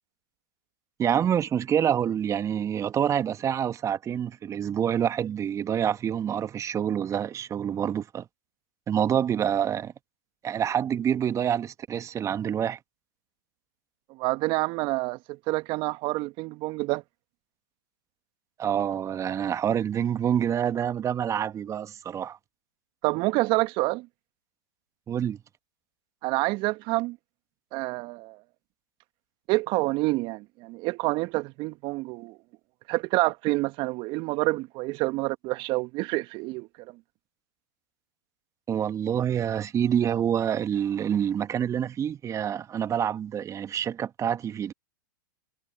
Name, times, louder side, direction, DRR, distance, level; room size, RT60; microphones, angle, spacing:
voice 1, 1.0-8.3 8.9-9.9 10.4-12.8 18.6-22.4 25.1-25.4 38.7-44.7, right 9 dB, 25° right, 1.8 m, -27 dB
voice 2, 14.1-17.0 23.0-24.1 26.2-27.2 27.7-28.4 29.5-32.4 32.9-36.9, right 22 dB, 45° right, 1.8 m, -28 dB
hypercardioid pair, 100°, 12 cm